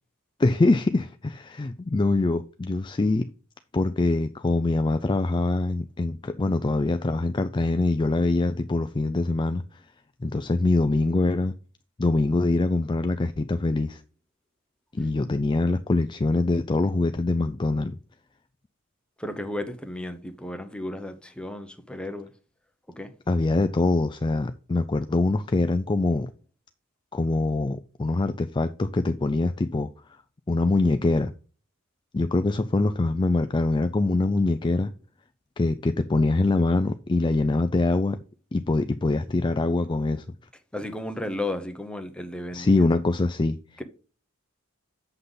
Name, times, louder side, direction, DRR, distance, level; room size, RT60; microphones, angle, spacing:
voice 1, 0.4-3.3 3.7-9.6 10.2-11.5 12.0-14.0 14.9-18.0 23.3-26.3 27.1-29.9 30.5-31.3 32.1-34.9 35.6-38.2 38.5-40.2 42.5-43.8, left 2 dB, 20° left, 0.4 m, -24 dB
voice 2, 19.2-22.3 23.0-23.1 40.7-42.8 43.8-43.9, left 1 dB, 5° left, 1.0 m, -34 dB
8.0 x 5.7 x 3.9 m
head